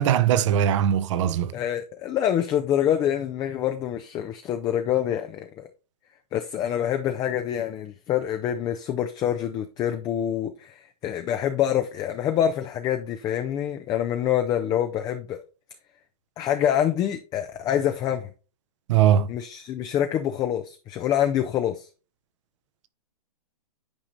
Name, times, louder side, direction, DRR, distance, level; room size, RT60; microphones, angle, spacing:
voice 1, 0.0-1.5 18.9-19.3, right 10 dB, 50° right, 0.7 m, -20 dB
voice 2, 1.5-5.5 6.3-15.4 16.4-18.3 19.3-21.9, left 10 dB, 20° left, 0.4 m, -26 dB
8.9 x 4.9 x 2.6 m
hypercardioid pair, 125°, 20 cm